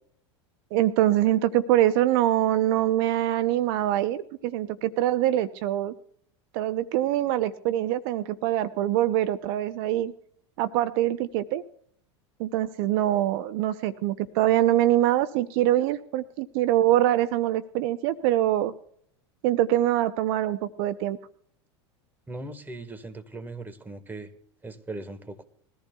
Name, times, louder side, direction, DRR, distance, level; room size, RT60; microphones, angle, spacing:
voice 1, 0.7-5.9 6.5-10.1 10.6-11.6 12.4-18.7 19.4-21.2, right 13 dB, 60° right, 13 dB, 0.7 m, -24 dB
voice 2, 22.3-24.3 24.6-25.4, right 2 dB, 15° right, 9 dB, 1.5 m, -39 dB
21.0 x 14.0 x 2.3 m, 0.63 s
hypercardioid pair, 95°, 15 cm